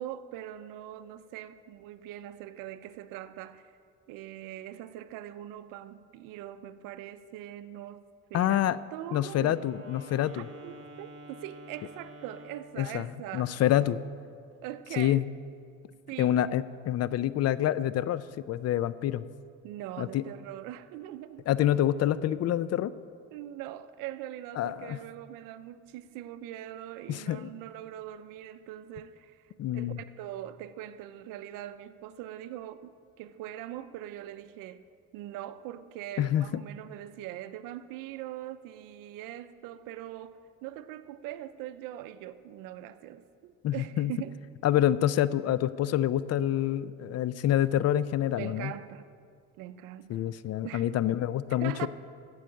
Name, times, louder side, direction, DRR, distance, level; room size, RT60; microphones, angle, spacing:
voice 1, 0.0-3.7 4.1-9.7 10.3-13.8 14.6-15.2 16.1-16.4 19.6-21.5 23.3-34.8 35.1-44.4 48.3-49.1 49.6-50.3 50.6-50.9 51.6-51.9, right 12 dB, 90° right, 0.5 m, -42 dB
voice 2, 8.3-8.8 9.1-10.5 12.8-14.0 15.0-15.3 16.2-19.3 20.0-20.2 21.5-22.9 24.6-25.0 27.1-27.5 29.6-30.0 36.2-36.6 43.6-44.1 44.6-48.7 50.1-51.9, left 12 dB, 55° left, 0.5 m, -27 dB
Wind instrument woodwind instrument, 9.2-12.8, right 1 dB, 50° right, 1.9 m, -49 dB
14.0 x 4.8 x 8.2 m
cardioid pair, 100°, 32 cm